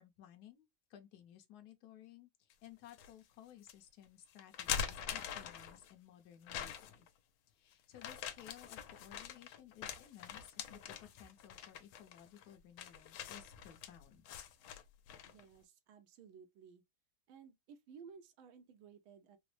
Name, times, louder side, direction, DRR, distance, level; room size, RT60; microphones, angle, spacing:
voice 1, 0.0-7.1 7.5-14.2, left 10 dB, 65° left, 1.1 m, -58 dB
sound 1, 2.5-3.1 3.7-3.8 4.4-5.9 6.5-7.1 8.0-15.4, left 8 dB, 80° left, 1.4 m, -44 dB
voice 2, 15.3-16.8 17.3-19.4, right 6 dB, 85° right, 1.5 m, -57 dB
4.0 x 2.0 x 3.1 m
omnidirectional pair, 2.2 m